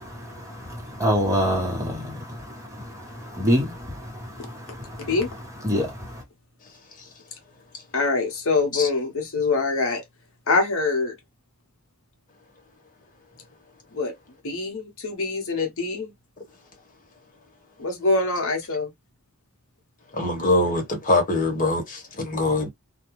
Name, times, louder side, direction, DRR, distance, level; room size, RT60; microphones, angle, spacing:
voice 1, 0.0-5.1 5.6-6.2, equal, 15° right, 1.1 m, -27 dB
voice 2, 7.9-10.0 10.5-11.1 13.9-14.1 14.4-16.1 17.8-18.9, left 3 dB, 60° left, 0.9 m, -24 dB
voice 3, 20.1-22.7, left 2 dB, 35° left, 1.1 m, -23 dB
2.4 x 2.2 x 3.0 m
head